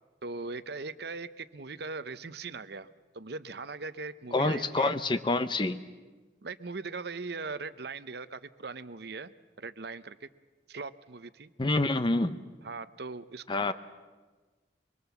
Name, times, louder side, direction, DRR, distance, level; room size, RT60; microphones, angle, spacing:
voice 1, 0.2-2.9 3.1-5.0 6.4-9.3 9.6-10.3 10.7-11.5 12.6-13.7, right 4 dB, 60° right, 14 dB, 0.8 m, -40 dB
voice 2, 4.3-5.8 11.6-12.4 13.5-13.7, left 2 dB, 25° left, 11 dB, 0.7 m, -27 dB
24.0 x 23.5 x 7.2 m, 1.3 s
head